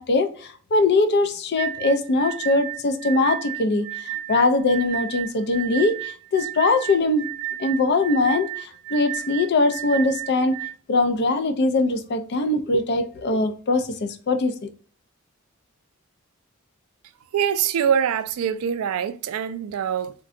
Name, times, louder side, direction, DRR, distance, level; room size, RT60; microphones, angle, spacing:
voice 1, 0.0-7.3 7.6-10.6 10.9-14.7, left 2 dB, 55° left, 0.4 m, -22 dB
sound 1, 1.6-10.7, right 14 dB, 50° right, 0.6 m, -32 dB
voice 2, 17.3-20.1, right 8 dB, 90° right, 0.3 m, -24 dB
3.6 x 2.2 x 2.4 m
head